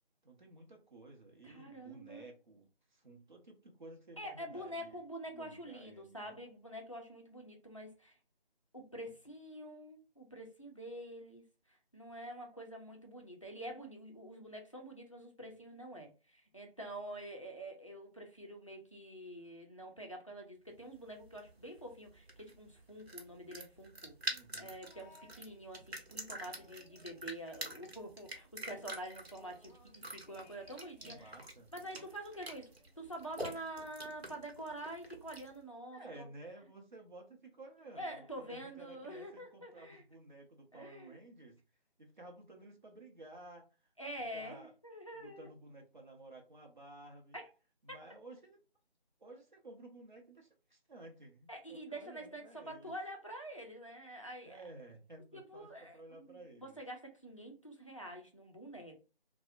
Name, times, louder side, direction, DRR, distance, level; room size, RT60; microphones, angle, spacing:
voice 1, 0.2-6.4 24.3-24.7 31.0-31.7 35.9-41.6 42.0-43.7 44.2-44.7 45.1-47.4 47.8-48.6 49.2-52.9 54.5-56.8, right 2 dB, 50° right, 0.6 m, -54 dB
voice 2, 1.4-2.3 4.2-8.2 8.7-31.4 31.7-36.3 38.0-40.0 40.7-41.2 44.0-45.5 47.3-47.5 47.9-48.0 51.5-54.6 55.3-59.0, right 1 dB, 35° left, 0.4 m, -47 dB
sound 1, 20.8-35.6, right 1 dB, 85° right, 0.8 m, -47 dB
sound 2, 24.8-26.1 26.4-28.3 28.6-28.7 29.0-31.4 31.8-33.1 33.9-34.0, left 2 dB, 50° left, 0.8 m, -65 dB
2.6 x 2.0 x 2.4 m
figure-of-eight pair, 160°, 30 cm